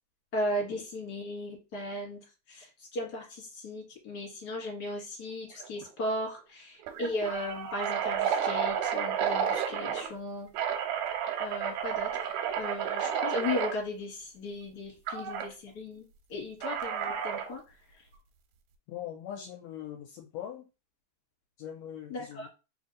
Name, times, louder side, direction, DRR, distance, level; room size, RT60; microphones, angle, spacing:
voice 1, 0.3-2.2 2.5-10.5 11.4-12.3 12.6-16.0 16.3-17.6 22.1-22.5, left 1 dB, 40° left, -1 dB, 1.9 m, -36 dB
sound 1, 5.6-5.9 6.2-6.3 6.8-10.1 10.5-13.7 15.1-15.5 16.6-17.6, right 8 dB, 90° right, 2.0 m, -31 dB
voice 2, 18.9-20.7 21.6-22.5, left 10 dB, 80° left, 1 dB, 1.8 m, -41 dB
4.3 x 2.7 x 3.8 m, 0.30 s
omnidirectional pair, 3.3 m